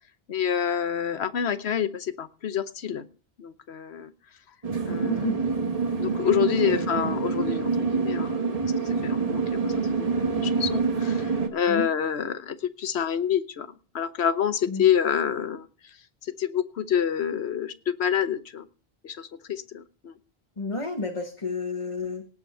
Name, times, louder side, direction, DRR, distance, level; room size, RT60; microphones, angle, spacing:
voice 1, 0.3-3.0 3.4-4.1 4.9-5.3 6.0-8.6 8.8-9.7 10.0-13.7 13.9-15.7 16.4-18.7 19.0-20.1, left 8 dB, 85° left, 12 dB, 1.2 m, -27 dB
sound 1, 4.6-11.5, right 4 dB, 35° right, 1.4 m, -26 dB
voice 2, 4.9-5.4 6.7-6.9 11.7-11.9 14.7-14.9 20.6-22.3, left 3 dB, 30° left, 2 dB, 1.4 m, -31 dB
18.0 x 8.1 x 4.4 m, 0.38 s
omnidirectional pair, 1.1 m